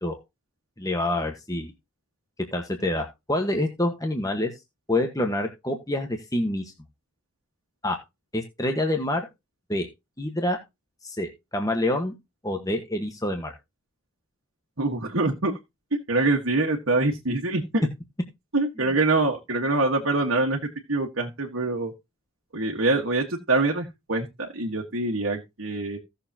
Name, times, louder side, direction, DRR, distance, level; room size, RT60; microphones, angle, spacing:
voice 1, 0.8-1.7 2.5-4.5 4.9-6.6 7.8-8.0 8.3-9.2 9.7-9.9 10.2-10.6 11.0-12.1 12.4-13.5, left 1 dB, 15° left, 1.4 m, -27 dB
voice 2, 14.8-15.5 15.9-17.9 18.5-21.9 22.5-26.0, right 2 dB, 65° right, 1.7 m, -25 dB
16.5 x 6.9 x 2.9 m
head